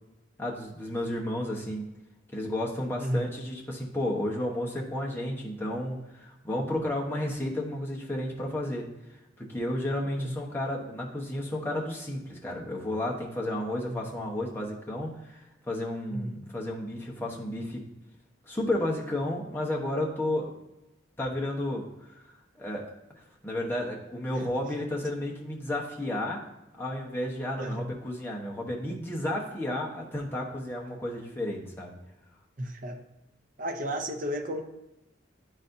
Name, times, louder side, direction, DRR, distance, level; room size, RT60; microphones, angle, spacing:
voice 1, 0.4-1.9 2.3-8.8 9.4-17.8 18.5-20.5 21.2-22.2 22.6-22.9 23.2-26.4 26.8-31.9, left 1 dB, 10° left, 1.0 m, -32 dB
voice 2, 16.1-16.4 27.6-27.9 32.6-33.0 33.6-34.6, equal, 45° right, 0.7 m, -33 dB
10.5 x 4.1 x 2.6 m
head